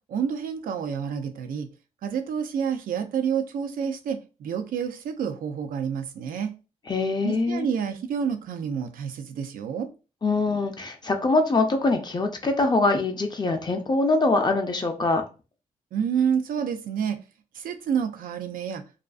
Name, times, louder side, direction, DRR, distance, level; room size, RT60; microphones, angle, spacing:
voice 1, 0.1-1.7 2.0-6.5 7.2-9.9 15.9-17.2 17.5-18.8, right 7 dB, 85° right, 0.4 m, -28 dB
voice 2, 6.9-7.7 10.2-15.2, left 3 dB, 30° left, 0.5 m, -23 dB
2.4 x 2.4 x 2.3 m
cardioid pair, 75°, 14 cm